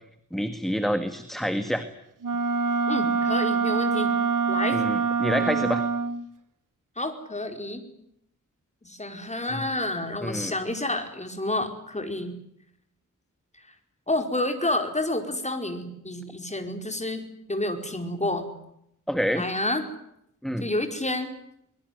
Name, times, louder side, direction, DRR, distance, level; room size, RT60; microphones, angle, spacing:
voice 1, 0.3-1.9 4.7-5.8 9.5-9.6 10.2-10.5 19.1-19.5 20.4-20.7, equal, ahead, 9 dB, 1.8 m, -27 dB
Wind instrument woodwind instrument, 2.2-6.3, right 5 dB, 70° right, 1.4 m, -25 dB
voice 2, 2.9-4.1 4.5-4.8 7.0-7.8 8.8-12.3 14.1-18.4 19.3-19.8 20.6-21.3, left 1 dB, 20° left, 6 dB, 4.8 m, -29 dB
23.5 x 22.0 x 9.3 m, 0.76 s
wide cardioid pair, 105°, 33 cm